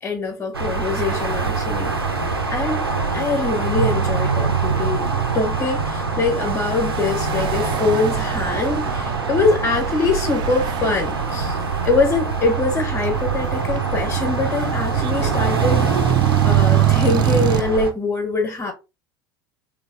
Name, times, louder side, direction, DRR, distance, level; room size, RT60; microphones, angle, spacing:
voice 1, 0.0-1.9 2.5-2.9 3.1-11.6 11.8-15.9 16.4-18.7, left 3 dB, 20° left, 1.3 m, -23 dB
sound 1, 0.5-17.9, right 4 dB, 85° right, 0.6 m, -24 dB
sound 2, 0.8-17.6, right 12 dB, 35° right, 0.4 m, -26 dB
3.4 x 3.1 x 3.7 m
figure-of-eight pair, 75°, 12 cm